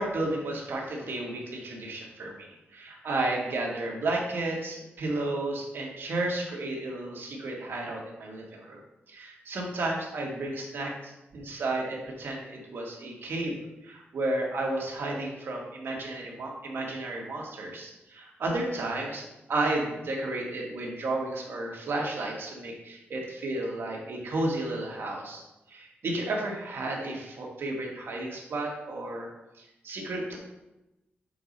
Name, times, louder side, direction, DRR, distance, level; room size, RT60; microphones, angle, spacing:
voice 1, 0.0-8.8 9.1-13.5 13.8-19.2 19.5-25.4 25.7-29.3 29.6-30.4, right 2 dB, 65° right, -2 dB, 1.7 m, -32 dB
6.8 x 4.2 x 5.2 m, 0.96 s
wide cardioid pair, 155°, 4 cm